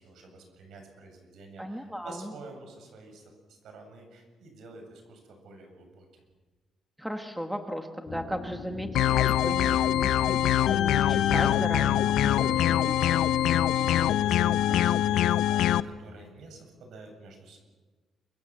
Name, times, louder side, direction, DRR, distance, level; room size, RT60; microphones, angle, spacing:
voice 1, 0.0-6.2 13.7-17.6, right 3 dB, 65° right, 5 dB, 7.7 m, -49 dB
voice 2, 1.6-2.3 7.0-13.0, equal, ahead, 4 dB, 1.6 m, -36 dB
sound 1, 8.0-15.3, left 4 dB, 30° left, 3.1 m, -40 dB
sound 2, 9.0-15.8, left 12 dB, 90° left, 0.8 m, -24 dB
28.0 x 24.5 x 7.6 m, 1.3 s
cardioid pair, 165°, 0 cm